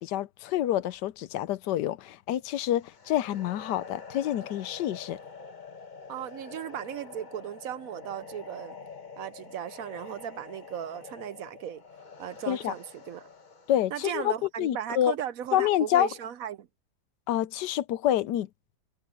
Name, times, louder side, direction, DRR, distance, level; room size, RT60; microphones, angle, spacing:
voice 1, 0.0-5.2 12.5-12.7 13.7-15.1 15.5-16.1 17.3-18.5, left 12 dB, 85° left, 1.3 m, -27 dB
sound 1, 2.8-13.9, left 4 dB, 30° left, 1.2 m, -47 dB
voice 2, 6.1-8.8 9.2-11.8 12.2-13.3 13.9-16.7, right 10 dB, 65° right, 1.0 m, -36 dB
omnidirectional pair, 1.8 m